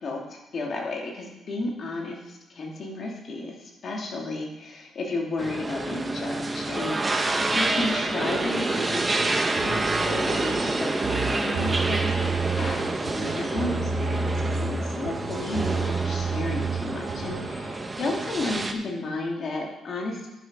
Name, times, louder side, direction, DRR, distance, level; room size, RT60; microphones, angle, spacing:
voice 1, 0.0-20.3, left 2 dB, 50° left, -1 dB, 2.5 m, -33 dB
sound 1, 5.4-18.7, right 2 dB, 25° right, 1.0 m, -28 dB
sound 2, 9.6-17.5, right 4 dB, 75° right, 4.5 m, -30 dB
11.0 x 6.5 x 5.4 m, 0.95 s
cardioid pair, 90°, 0 cm